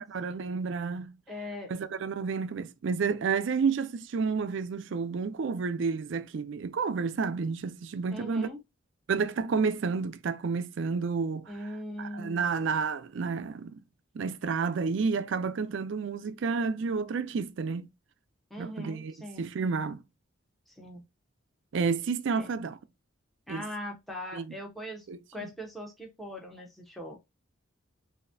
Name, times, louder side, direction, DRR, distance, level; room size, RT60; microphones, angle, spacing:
voice 1, 0.0-1.2 1.7-8.5 9.1-11.5 12.0-13.7 14.1-17.9 18.6-20.0 21.7-22.8 23.5-23.6 24.3-24.6 25.1-25.5, right 5 dB, 65° right, 0.4 m, -30 dB
voice 2, 1.3-1.7 8.1-8.6 11.5-12.5 18.5-19.5 20.7-21.0 22.4-22.5 23.5-25.1 25.3-27.2, equal, ahead, 0.8 m, -40 dB
3.9 x 2.7 x 2.5 m
head